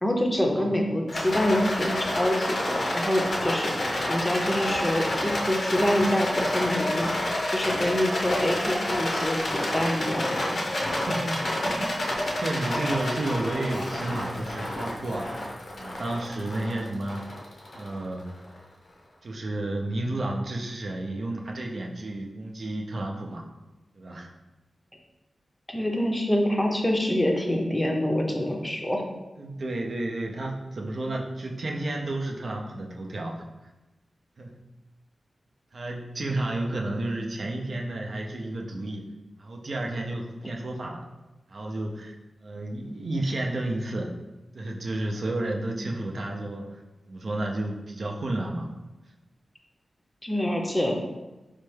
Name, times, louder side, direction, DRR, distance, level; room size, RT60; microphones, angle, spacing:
voice 1, 0.0-7.1 7.5-10.6 25.7-29.0 50.2-51.0, left 1 dB, 10° left, 1 dB, 0.5 m, -26 dB
Rattle, 1.1-18.4, left 1 dB, 60° left, 0.6 m, -29 dB
voice 2, 10.8-12.0 12.3-15.3 15.7-17.3 17.7-18.2 19.2-23.4 23.9-24.3 29.4-33.4 34.4-34.6 35.7-39.1 39.4-41.1 41.5-42.2 42.4-44.1 44.5-46.8 47.1-48.7, right 2 dB, 60° right, 0 dB, 0.5 m, -31 dB
4.2 x 2.3 x 3.2 m, 1.0 s
wide cardioid pair, 85°, 0 cm